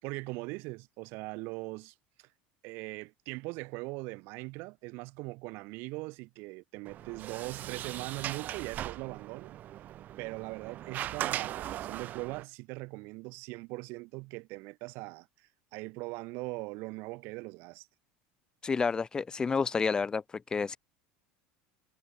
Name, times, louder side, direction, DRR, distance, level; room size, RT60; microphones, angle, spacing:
voice 1, 0.0-2.3 2.6-9.6 10.2-17.9, right 25 dB, 60° right, 4.6 m, -41 dB
Sliding door, 6.8-12.4, right 12 dB, 40° right, 6.3 m, -39 dB
voice 2, 18.6-20.2 20.5-20.8, left 5 dB, 20° left, 1.2 m, -29 dB
supercardioid pair, 140°, 4 cm